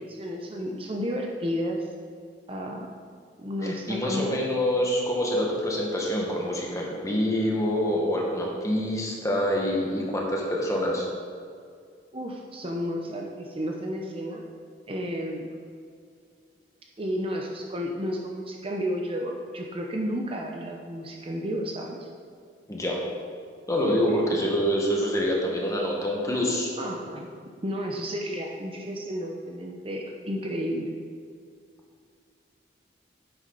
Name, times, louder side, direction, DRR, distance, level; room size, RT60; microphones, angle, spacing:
voice 1, 0.1-1.9 2.5-2.9 3.4-4.4 12.1-14.4 14.9-15.6 17.0-22.1 23.8-24.3 26.8-27.3 27.6-30.9, equal, 30° right, 1 dB, 0.8 m, -32 dB
voice 2, 3.6-11.1 22.7-23.0 23.7-26.7, equal, 20° left, -2 dB, 1.5 m, -26 dB
9.8 x 7.8 x 4.0 m, 2.2 s
head